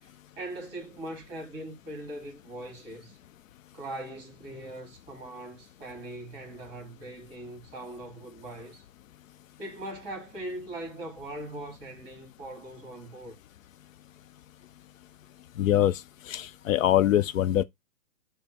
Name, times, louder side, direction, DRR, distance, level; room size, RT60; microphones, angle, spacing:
voice 1, 0.0-3.2 3.7-8.8 9.6-13.4, right 1 dB, 15° right, 1.2 m, -41 dB
voice 2, 15.6-16.0 16.3-17.6, left 12 dB, 80° left, 0.5 m, -23 dB
5.2 x 2.0 x 4.5 m
hypercardioid pair, 165°, 39 cm